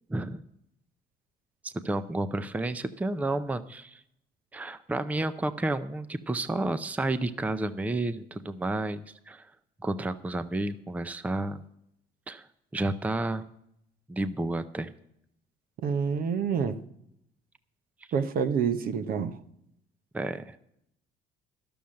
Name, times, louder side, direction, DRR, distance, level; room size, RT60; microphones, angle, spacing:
voice 1, 0.1-0.4 1.6-4.0 4.5-9.5 9.8-11.6 12.3-12.5 12.7-13.4 14.1-14.9 20.1-20.6, right 2 dB, 10° right, 0.5 m, -31 dB
voice 2, 15.8-16.8 18.1-19.4, right 6 dB, 60° right, 0.9 m, -27 dB
11.5 x 7.1 x 7.5 m
cardioid pair, 110°, 17 cm